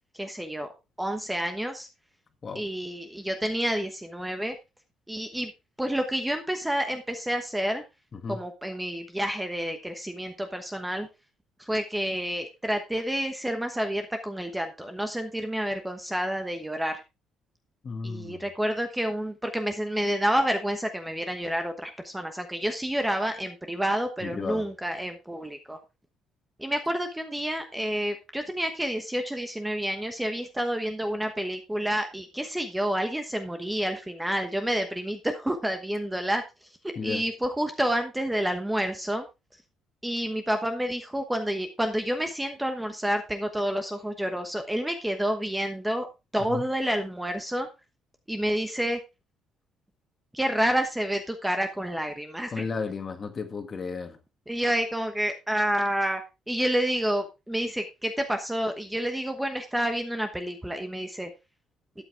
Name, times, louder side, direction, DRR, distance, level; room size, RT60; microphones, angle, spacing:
voice 1, 0.1-0.7 1.0-1.9 2.5-4.5 5.1-5.5 5.8-7.8 8.3-11.1 11.6-17.0 18.0-25.8 26.6-36.4 36.8-39.3 40.0-46.1 46.3-47.7 48.3-49.0 50.3-52.6 54.5-56.2 56.5-61.3, equal, 5° right, 1.1 m, -29 dB
voice 2, 17.8-18.4 24.2-24.7 37.0-37.2 46.5-46.7 52.5-54.2, left 4 dB, 30° left, 1.8 m, -33 dB
12.5 x 8.8 x 3.4 m
cardioid pair, 155°, 0 cm